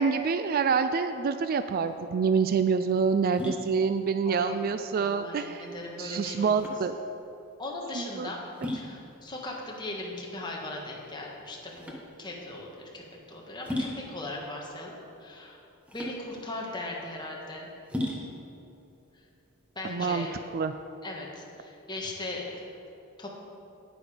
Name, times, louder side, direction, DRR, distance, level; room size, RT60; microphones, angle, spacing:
voice 1, 0.0-5.7 6.0-7.0 7.9-8.3 19.8-20.3 20.5-20.7, right 5 dB, 40° right, 10 dB, 0.3 m, -26 dB
sound 1, 1.8-20.3, left 1 dB, 5° right, 1.0 m, -40 dB
voice 2, 5.0-6.6 7.6-8.4 8.7-13.0 13.3-15.6 15.9-17.7 19.7-20.4 21.0-22.6 23.2-23.3, left 2 dB, 20° left, -2 dB, 1.5 m, -38 dB
9.5 x 9.0 x 5.0 m, 2.8 s
head